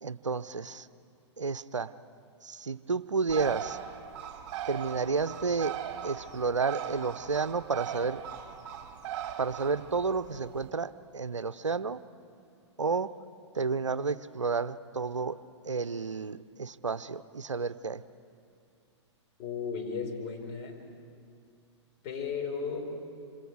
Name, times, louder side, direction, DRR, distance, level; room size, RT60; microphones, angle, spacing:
voice 1, 0.0-0.9 1.4-1.9 2.4-3.8 4.7-8.2 9.4-12.0 12.8-13.1 13.5-18.0, right 4 dB, 90° right, 16 dB, 0.6 m, -31 dB
Bird, 3.3-10.7, right 9 dB, 45° right, 1.9 m, -39 dB
voice 2, 19.4-20.8 22.0-22.9, left 5 dB, 40° left, 1 dB, 4.6 m, -35 dB
27.0 x 26.5 x 4.8 m, 2.4 s
figure-of-eight pair, 110°, 15 cm